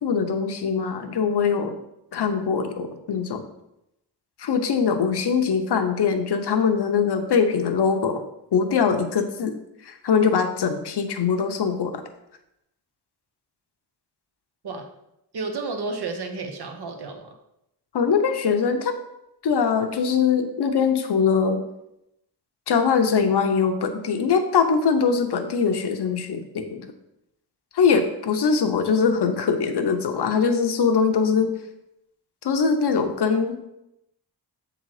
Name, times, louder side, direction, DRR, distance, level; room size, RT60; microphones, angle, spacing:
voice 1, 0.0-1.8 2.1-3.4 4.4-8.2 8.5-9.6 9.8-12.0 17.9-19.0 19.4-21.6 22.7-26.9 27.7-31.5 32.4-33.7, left 6 dB, 70° left, 6 dB, 0.9 m, -22 dB
voice 2, 15.3-17.3, right 3 dB, 70° right, 4 dB, 1.1 m, -31 dB
7.3 x 3.9 x 4.8 m, 0.84 s
wide cardioid pair, 100°, 41 cm